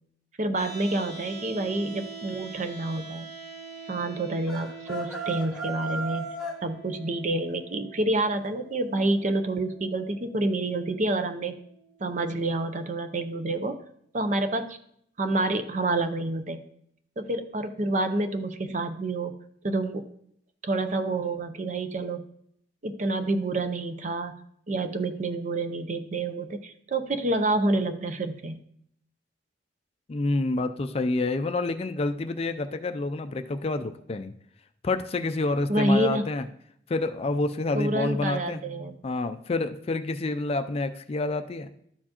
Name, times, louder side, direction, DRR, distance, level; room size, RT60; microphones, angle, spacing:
voice 1, 0.4-3.3 3.9-6.3 6.6-11.5 12.0-13.7 14.1-14.8 15.2-16.6 17.2-19.3 19.6-20.0 20.6-22.2 22.8-24.4 24.7-28.6 35.7-36.2 37.7-38.9, right 2 dB, 45° right, 8 dB, 0.6 m, -28 dB
sound 1, 0.5-12.6, right 4 dB, 70° right, 3.0 m, -45 dB
sound 2, 4.5-6.6, right 2 dB, 5° right, 1.2 m, -34 dB
voice 2, 30.1-34.3 34.8-36.4 36.9-38.6 39.0-41.7, left 2 dB, 35° left, 9 dB, 0.4 m, -28 dB
12.5 x 4.4 x 2.9 m, 0.69 s
head